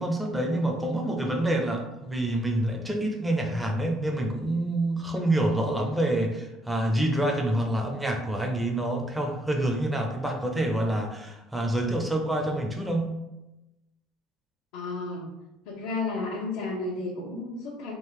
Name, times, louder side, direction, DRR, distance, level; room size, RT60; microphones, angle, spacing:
voice 1, 0.0-13.2, right 1 dB, 5° right, 1 dB, 0.7 m, -27 dB
voice 2, 14.7-15.3 15.6-17.9, left 3 dB, 85° left, -6 dB, 1.1 m, -32 dB
3.7 x 2.5 x 4.6 m, 0.96 s
supercardioid pair, 115°, 0 cm